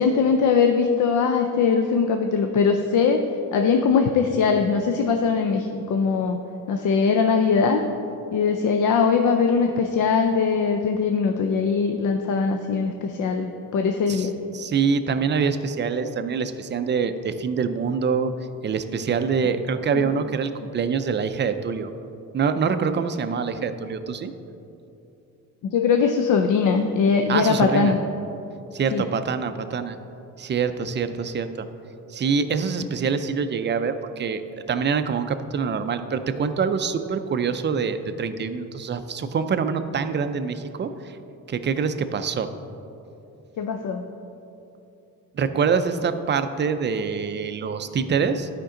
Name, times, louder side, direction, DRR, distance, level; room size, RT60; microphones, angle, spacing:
voice 1, 0.0-3.2 3.5-6.4 6.7-7.8 8.3-14.3 25.6-28.0 28.9-29.0 43.6-44.0, left 5 dB, 60° left, 5 dB, 0.6 m, -21 dB
voice 2, 14.1-18.3 18.6-21.9 22.3-24.3 27.3-27.9 28.7-30.0 30.4-31.7 32.1-40.9 41.5-42.5 45.3-48.5, right 6 dB, 30° right, 9 dB, 0.4 m, -25 dB
11.5 x 5.2 x 3.8 m, 2.8 s
cardioid pair, 105°, 35 cm